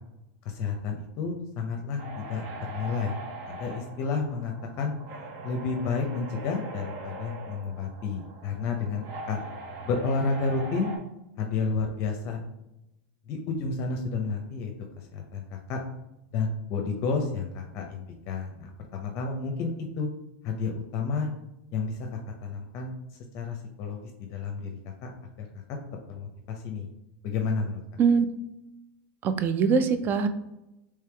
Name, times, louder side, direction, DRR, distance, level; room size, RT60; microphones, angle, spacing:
voice 1, 0.5-3.2 3.4-4.5 4.8-4.9 5.4-9.4 9.8-10.9 11.4-12.4 13.3-14.7 15.1-15.8 16.3-19.7 20.0-20.1 20.4-21.3 21.7-22.0 22.4-22.9 23.3-24.7 25.0-25.1 25.4-25.5 26.1-26.9 27.2-27.8, left 4 dB, 45° left, 2 dB, 0.5 m, -31 dB
sound 1, 2.0-11.0, right 3 dB, 60° right, 0.8 m, -41 dB
voice 2, 29.2-30.3, right 5 dB, 35° right, 10 dB, 0.4 m, -22 dB
3.3 x 3.2 x 3.3 m, 0.90 s
supercardioid pair, 125°, 6 cm